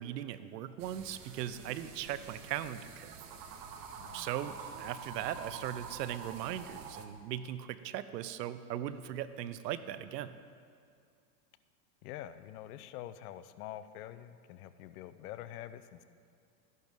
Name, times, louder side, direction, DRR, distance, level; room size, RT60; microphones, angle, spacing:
voice 1, 0.0-3.1 4.1-10.3, right 11 dB, 75° right, 14 dB, 0.8 m, -39 dB
sound 1, 0.8-7.1, right 6 dB, 45° right, 1.1 m, -47 dB
voice 2, 4.0-4.3 12.0-16.0, left 12 dB, 65° left, 12 dB, 0.7 m, -46 dB
13.5 x 11.0 x 3.6 m, 2.3 s
hypercardioid pair, 120°, 50 cm